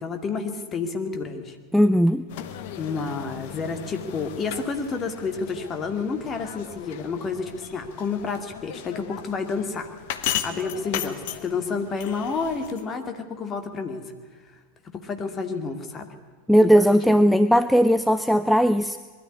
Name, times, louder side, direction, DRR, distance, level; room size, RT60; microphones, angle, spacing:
voice 1, 0.0-1.6 2.8-9.9 10.4-14.0 14.9-16.1 16.6-16.7, left 4 dB, 25° left, 6 dB, 2.3 m, -30 dB
voice 2, 1.7-2.2 16.5-19.0, equal, ahead, 12 dB, 0.5 m, -18 dB
sound 1, 2.3-12.9, left 10 dB, 50° left, 1.3 m, -36 dB
20.5 x 13.0 x 9.8 m, 1.5 s
figure-of-eight pair, 90°, 0 cm